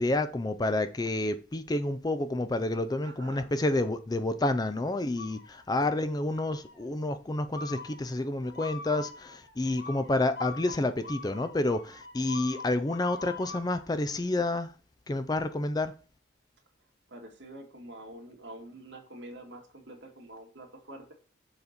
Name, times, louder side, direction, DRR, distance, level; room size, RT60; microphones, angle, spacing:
voice 1, 0.0-14.7 15.1-15.9, left 2 dB, 20° left, 0.4 m, -29 dB
voice 2, 3.0-3.6 5.8-6.0 17.1-21.1, right 1 dB, 65° right, 2.1 m, -46 dB
sound 1, 5.2-5.9 6.3-6.9 7.5-13.9, left 3 dB, 65° left, 1.3 m, -44 dB
7.0 x 4.0 x 6.5 m
head